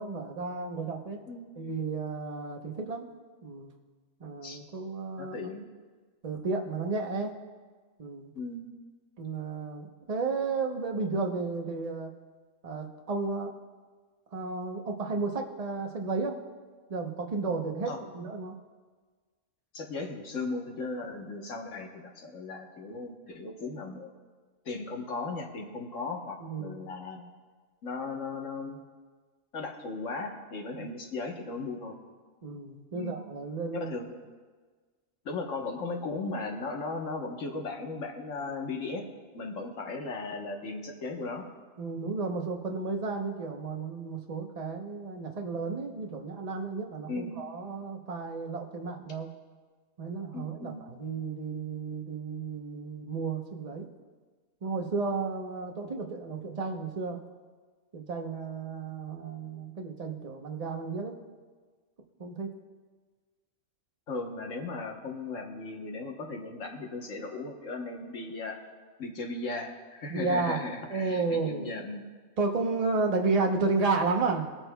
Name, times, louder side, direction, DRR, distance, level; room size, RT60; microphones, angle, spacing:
voice 1, 0.0-1.3 1.6-3.0 3.4-3.7 4.2-5.4 6.2-7.4 8.0-8.3 9.2-12.1 12.6-13.5 14.3-16.4 16.9-18.6 26.4-26.8 32.4-33.9 41.8-49.3 50.0-53.9 54.6-57.2 57.9-61.2 62.2-62.5 70.1-70.6 70.9-71.7 72.4-74.5, right 4 dB, 35° right, 2 dB, 0.9 m, -32 dB
voice 2, 5.2-5.7 8.3-8.7 17.9-18.0 19.7-24.1 24.6-27.3 27.8-28.8 29.5-31.9 32.9-33.2 33.8-34.1 35.2-39.0 39.3-41.4 47.1-47.4 50.3-50.9 64.1-68.6 69.0-72.0, left 3 dB, 80° left, 1 dB, 1.5 m, -37 dB
23.5 x 8.9 x 2.3 m, 1.5 s
omnidirectional pair, 1.3 m